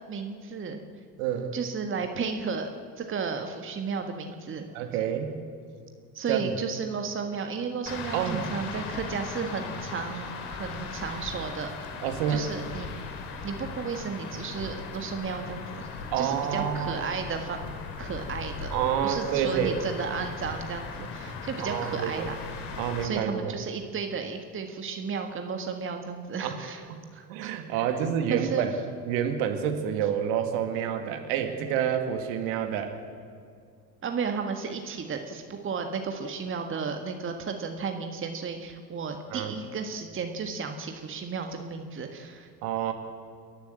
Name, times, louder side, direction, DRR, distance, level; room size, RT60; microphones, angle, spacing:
voice 1, 0.1-0.8 1.5-2.7 3.0-4.7 6.1-11.9 12.3-12.9 13.4-17.6 18.0-18.7 19.0-22.7 23.0-26.8 27.1-28.7 34.0-42.5, right 5 dB, 25° right, 5 dB, 1.6 m, -33 dB
voice 2, 1.2-1.5 4.7-5.4 6.3-6.5 8.1-8.5 12.0-12.5 16.1-17.0 18.7-19.8 21.6-22.3 22.7-23.6 26.4-26.6 27.3-28.7 29.1-33.0 39.3-39.5 42.6-42.9, right 9 dB, 55° right, 6 dB, 2.2 m, -28 dB
sound 1, 7.9-23.1, left 4 dB, 50° left, 2.6 m, -38 dB
30.0 x 11.5 x 7.8 m, 2.2 s
figure-of-eight pair, 65°, 50 cm